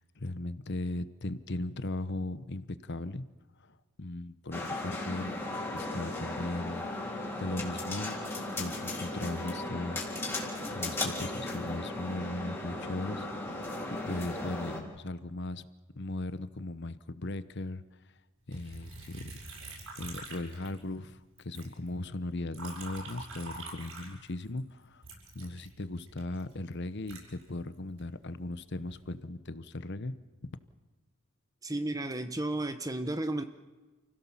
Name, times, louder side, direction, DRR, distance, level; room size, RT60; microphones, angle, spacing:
voice 1, 0.0-3.2 3.6-5.3 5.7-7.1 7.4-8.2 8.6-10.0 10.7-13.6 14.1-15.7 15.9-17.8 18.5-19.4 20.0-25.0 25.3-30.1 30.4-30.5, left 2 dB, 50° left, 14 dB, 1.0 m, -38 dB
sound 1, 4.5-14.8, left 2 dB, 10° left, 3.7 m, -36 dB
Liquid, 18.5-21.1 21.4-24.6 25.0-28.0 28.6-29.1, right 2 dB, 70° right, 7.6 m, -46 dB
voice 2, 31.6-33.4, right 1 dB, 15° right, 9 dB, 0.9 m, -33 dB
29.0 x 16.5 x 7.3 m, 1.2 s
head